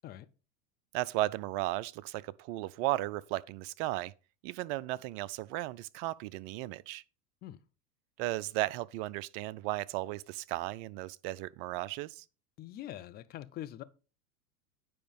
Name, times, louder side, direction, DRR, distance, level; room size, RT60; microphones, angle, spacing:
voice 1, 0.9-4.1 4.4-7.0 8.2-12.2, right 17 dB, 40° right, 0.4 m, -35 dB
voice 2, 12.6-13.8, left 13 dB, 20° left, 0.4 m, -43 dB
9.3 x 5.1 x 5.3 m
hypercardioid pair, 100°, 46 cm